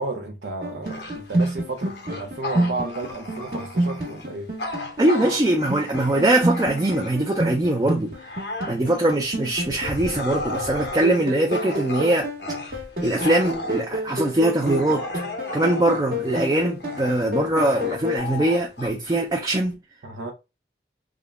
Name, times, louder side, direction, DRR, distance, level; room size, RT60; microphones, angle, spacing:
voice 1, 0.0-4.5 20.0-20.3, right 2 dB, 85° right, 0.7 m, -32 dB
sound 1, 0.6-18.2, right 1 dB, 55° right, 1.2 m, -29 dB
Bark / Growling, 0.8-7.4 7.8-19.7, left 2 dB, 75° left, 0.7 m, -35 dB
voice 2, 5.0-8.1 8.7-12.3 12.7-15.1 15.5-19.8, right 1 dB, 20° right, 0.4 m, -22 dB
3.6 x 2.1 x 3.4 m
head